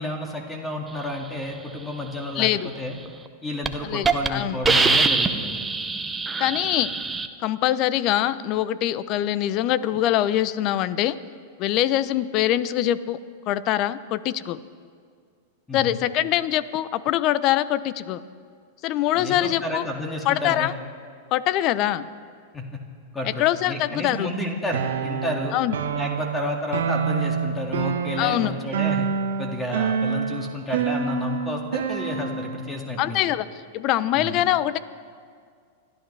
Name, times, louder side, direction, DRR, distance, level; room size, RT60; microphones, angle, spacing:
voice 1, 0.0-3.0 3.4-5.6 15.7-16.0 19.1-20.7 22.5-22.8 23.1-25.5 25.9-29.1 29.4-33.2 34.1-34.4, left 1 dB, 15° left, 1 dB, 2.1 m, -31 dB
voice 2, 2.4-2.7 3.8-4.6 6.4-6.9 7.4-11.2 11.6-13.2 13.5-14.6 15.7-18.2 18.8-19.8 20.3-20.7 21.3-22.1 23.4-24.3 25.5-25.7 28.2-28.5 33.0-33.5 33.7-34.8, left 13 dB, 45° left, 16 dB, 0.6 m, -23 dB
Hiss, 3.1-3.3 3.6-3.7 4.0-4.3 4.6-7.3, right 4 dB, 15° right, 0.9 m, -23 dB
sound 1, 24.7-32.6, right 6 dB, 75° right, 1.3 m, -27 dB
29.5 x 12.5 x 3.4 m, 2.1 s
hypercardioid pair, 105°, 0 cm